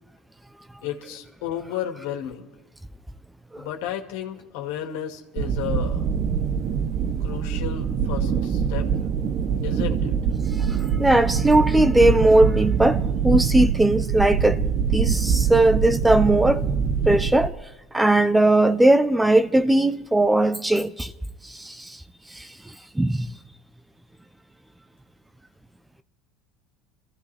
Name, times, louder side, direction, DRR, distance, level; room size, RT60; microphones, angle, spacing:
voice 1, 0.8-2.5 3.6-6.0 7.2-8.9 9.6-10.1, left 10 dB, 80° left, 2.1 m, -33 dB
sound 1, 5.4-17.5, right 7 dB, 45° right, 0.8 m, -24 dB
voice 2, 10.6-14.6 14.9-16.6 17.1-17.5 17.9-21.1 21.4-22.0 22.3-23.3, right 1 dB, 5° right, 0.7 m, -19 dB
26.5 x 15.0 x 3.4 m
supercardioid pair, 115°, 0 cm